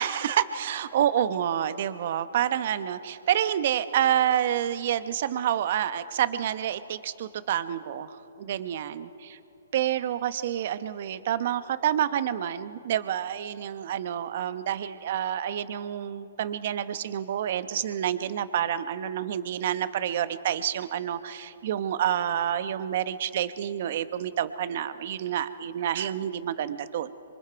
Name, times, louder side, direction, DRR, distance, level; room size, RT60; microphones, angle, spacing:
voice 1, 0.0-9.4 9.7-27.1, right 10 dB, 55° right, 13 dB, 0.9 m, -28 dB
26.5 x 24.0 x 4.7 m, 2.8 s
hypercardioid pair, 140°, 0 cm